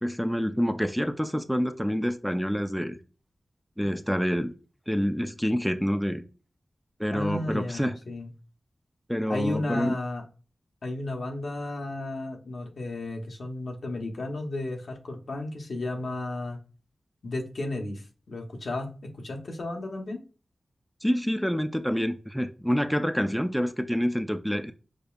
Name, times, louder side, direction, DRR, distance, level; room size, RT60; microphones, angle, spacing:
voice 1, 0.0-3.0 3.8-4.5 4.9-6.2 7.0-8.0 9.1-10.0 21.0-24.7, equal, ahead, 0.4 m, -27 dB
voice 2, 7.1-8.3 9.3-10.2 10.8-16.6 17.2-20.2, left 2 dB, 75° left, 0.9 m, -33 dB
5.1 x 2.3 x 2.3 m
cardioid pair, 60°, 0 cm